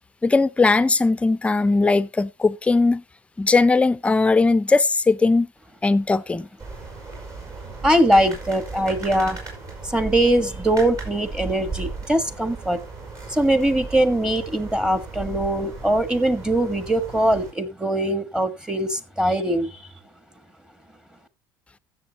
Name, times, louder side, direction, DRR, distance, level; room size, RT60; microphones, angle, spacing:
voice 1, 0.2-3.0 3.4-5.5 5.8-6.5, left 3 dB, 15° left, 0.6 m, -19 dB
sound 1, 6.6-17.5, right 3 dB, 40° right, 5.2 m, -36 dB
voice 2, 7.8-9.4 9.8-12.8 13.3-19.8, right 1 dB, 10° right, 1.4 m, -21 dB
15.0 x 7.1 x 2.9 m
cardioid pair, 115°, 9 cm